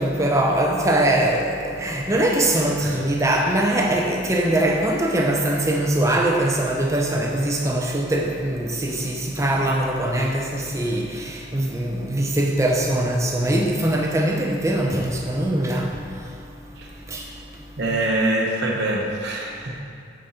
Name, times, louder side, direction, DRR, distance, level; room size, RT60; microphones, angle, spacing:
voice 1, 0.0-1.5 1.8-11.1 11.5-15.9 17.1-17.2, right 1 dB, 15° right, 0 dB, 0.7 m, -22 dB
voice 2, 17.8-19.8, right 1 dB, 55° right, -2 dB, 1.0 m, -24 dB
9.2 x 5.2 x 4.3 m, 2.4 s
head